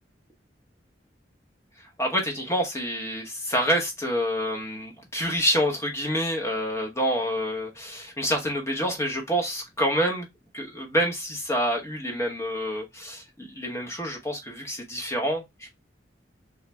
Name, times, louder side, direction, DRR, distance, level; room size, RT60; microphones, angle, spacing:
voice 1, 2.0-10.3 10.5-15.7, equal, 15° left, 0.9 m, -27 dB
3.4 x 2.4 x 3.0 m
head